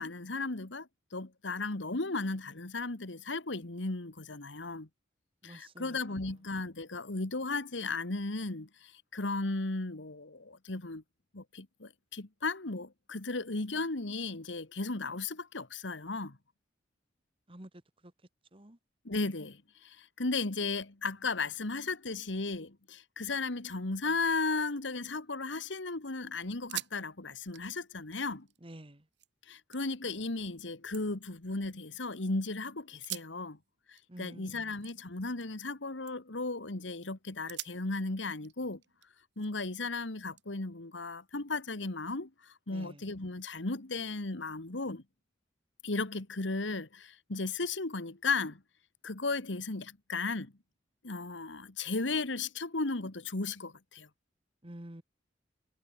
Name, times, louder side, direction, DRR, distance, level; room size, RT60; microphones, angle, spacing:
voice 1, 0.0-4.9 5.4-11.0 11.3-16.4 19.1-28.5 29.5-33.6 33.9-38.8 39.4-45.0 45.8-48.6 49.0-50.5 51.0-54.1, left 3 dB, 80° left, 1.8 m, -35 dB
voice 2, 5.4-6.0 17.5-17.7 18.5-18.8 28.6-29.0 34.1-34.7 42.7-43.0 54.6-55.0, right 1 dB, 30° right, 1.8 m, -48 dB
sound 1, 24.9-25.7 26.1-26.2 26.5-27.0 27.3-29.3 29.7-30.2 30.6-32.2 32.9-35.7 36.0-36.4 36.9-37.0 37.5-39.7 40.4-41.5, right 14 dB, 70° right, 4.2 m, -47 dB
head